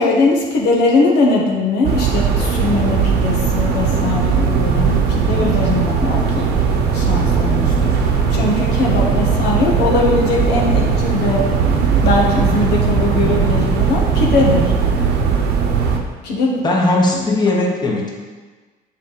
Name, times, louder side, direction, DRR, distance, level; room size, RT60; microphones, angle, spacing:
voice 1, 0.0-6.5 6.9-11.5 12.0-14.7 16.2-16.6 17.1-17.3, left 3 dB, 80° left, -2 dB, 1.3 m, -20 dB
sound 1, 1.8-16.0, right 6 dB, 80° right, 0.9 m, -17 dB
voice 2, 16.6-18.1, left 2 dB, 25° left, -2 dB, 1.3 m, -17 dB
7.1 x 4.4 x 4.0 m, 1.3 s
cardioid pair, 110°, 17 cm